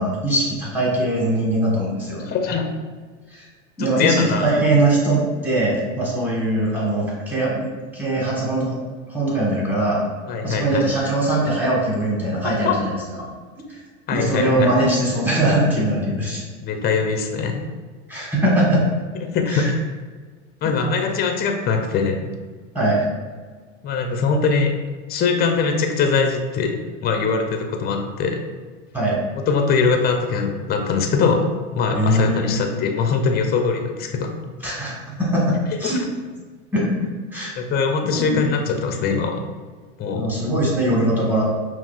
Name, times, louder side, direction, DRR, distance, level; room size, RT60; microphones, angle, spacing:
voice 1, 0.0-2.2 3.3-3.4 3.8-7.7 7.9-8.8 9.1-10.0 10.4-13.3 13.6-13.8 14.1-16.4 18.1-18.8 19.5-19.7 22.7-23.0 28.9-29.2 31.9-32.6 34.6-36.0 36.7-37.5 38.0-38.4 40.1-41.4, right 1 dB, 5° right, -5 dB, 1.4 m, -21 dB
voice 2, 2.2-2.7 3.8-4.5 10.3-10.9 12.4-12.8 14.1-14.7 16.6-17.6 19.2-19.7 20.6-22.2 23.8-24.7 25.1-28.4 29.3-34.3 35.8-36.0 37.6-39.4 40.0-40.3, left 5 dB, 25° left, 4 dB, 0.5 m, -22 dB
5.6 x 2.4 x 2.4 m, 1.5 s
hypercardioid pair, 100°, 37 cm